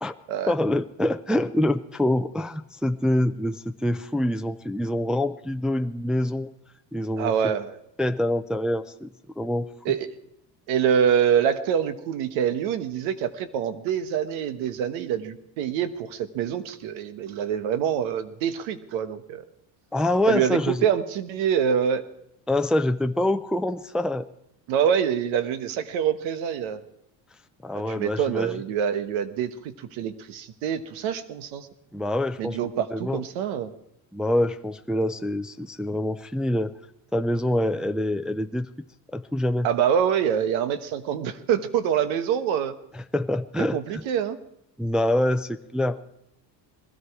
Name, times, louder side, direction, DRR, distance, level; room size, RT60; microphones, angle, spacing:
voice 1, 0.5-6.5 6.9-7.3 8.0-9.9 19.9-20.9 22.5-24.3 27.6-28.6 31.9-32.6 32.9-33.2 34.1-36.7 37.1-38.7 39.1-39.7 42.9-44.0 44.8-46.0, left 1 dB, ahead, 8 dB, 0.5 m, -25 dB
voice 2, 7.2-7.8 9.8-10.1 10.7-19.4 20.3-22.0 24.7-26.8 28.0-31.7 32.4-33.7 39.6-42.7 43.7-44.4, right 8 dB, 90° right, 11 dB, 1.3 m, -25 dB
20.0 x 13.5 x 4.8 m, 0.80 s
cardioid pair, 100°, 46 cm